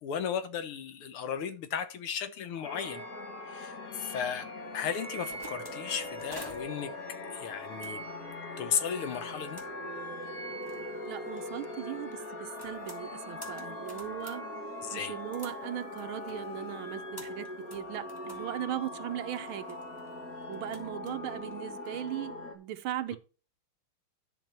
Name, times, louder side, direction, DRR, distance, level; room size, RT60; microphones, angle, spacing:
voice 1, 0.0-3.0 3.5-4.5 4.7-6.9 7.3-8.0 8.6-9.6 14.8-15.1, left 8 dB, 80° left, 2.0 m, -35 dB
sound 1, 2.6-22.5, left 1 dB, 45° left, 1.9 m, -41 dB
sound 2, 5.0-22.2, equal, 10° left, 1.7 m, -54 dB
voice 2, 11.1-14.5 14.9-19.8 20.5-23.2, right 12 dB, 75° right, 1.5 m, -38 dB
11.0 x 6.0 x 4.5 m
omnidirectional pair, 2.4 m